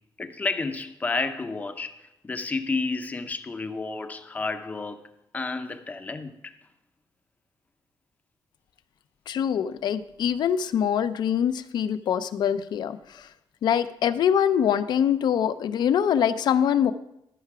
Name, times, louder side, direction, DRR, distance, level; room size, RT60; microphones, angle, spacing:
voice 1, 0.2-2.0 2.2-5.1 5.3-6.5, left 3 dB, 20° left, 0.6 m, -31 dB
voice 2, 9.3-13.3 13.6-16.9, left 8 dB, 65° left, 0.5 m, -24 dB
13.0 x 5.7 x 4.8 m
wide cardioid pair, 170°, 8 cm